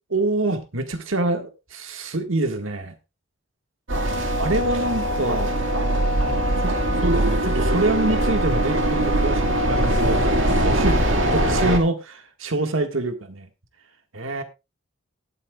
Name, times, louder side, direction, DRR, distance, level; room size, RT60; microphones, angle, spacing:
voice 1, 0.1-2.9 4.4-5.5 6.6-11.0 11.3-13.5 14.1-14.4, right 2 dB, 90° right, 7 dB, 1.7 m, -26 dB
sound 1, 3.9-11.8, right 1 dB, 70° right, 2.0 m, -21 dB
18.5 x 8.7 x 2.3 m, 0.25 s
head